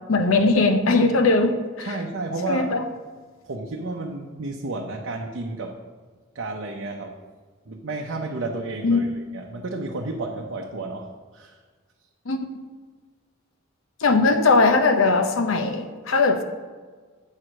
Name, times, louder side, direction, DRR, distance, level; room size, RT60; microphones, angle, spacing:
voice 1, 0.1-1.9 2.5-2.8 8.8-9.0 12.3-12.5 14.0-16.4, left 3 dB, 70° left, 7 dB, 0.8 m, -19 dB
voice 2, 1.8-2.7 3.4-5.8 6.3-7.2 7.7-11.6, right 2 dB, 60° right, 0 dB, 0.7 m, -32 dB
8.5 x 4.7 x 6.3 m, 1.5 s
head